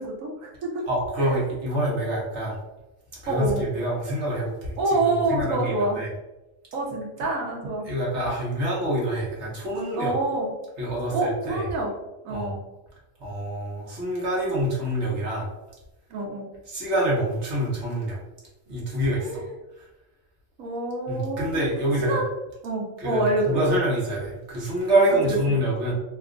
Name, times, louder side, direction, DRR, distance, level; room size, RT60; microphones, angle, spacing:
voice 1, 0.0-0.9 1.2-1.4 3.3-3.6 4.8-6.0 6.7-7.9 9.9-10.5 11.1-11.9 12.2-12.6 16.1-16.5 19.1-19.5 20.6-22.2 22.6-23.7 25.0-25.6, right 2 dB, 85° right, 0 dB, 1.2 m, -27 dB
voice 2, 0.9-2.6 3.2-4.8 5.0-6.1 7.9-10.1 10.8-11.6 12.3-12.5 13.2-15.5 16.7-18.2 18.7-19.4 21.1-22.2 23.0-25.9, right 1 dB, 60° right, -5 dB, 1.3 m, -26 dB
2.9 x 2.3 x 3.6 m, 1.0 s
omnidirectional pair, 1.4 m